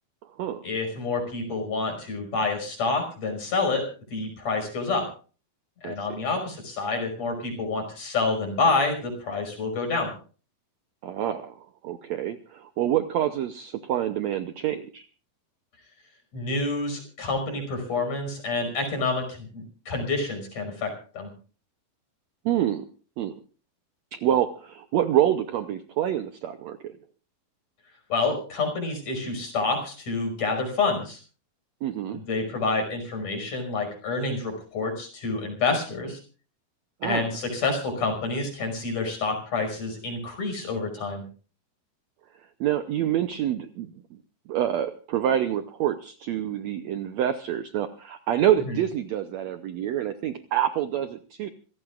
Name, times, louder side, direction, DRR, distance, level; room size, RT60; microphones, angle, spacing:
voice 1, 0.6-3.9 4.1-5.1 5.8-10.1 16.3-21.3 28.1-31.2 32.1-36.2 37.0-41.2 48.7-48.8, left 3 dB, 45° left, 4 dB, 6.5 m, -28 dB
voice 2, 11.0-11.6 11.8-15.1 22.4-22.8 23.2-23.4 24.1-26.9 31.8-32.2 37.0-37.3 42.6-43.9 44.5-51.5, right 11 dB, 85° right, 9 dB, 1.5 m, -27 dB
26.5 x 16.5 x 2.5 m, 0.39 s
omnidirectional pair, 4.2 m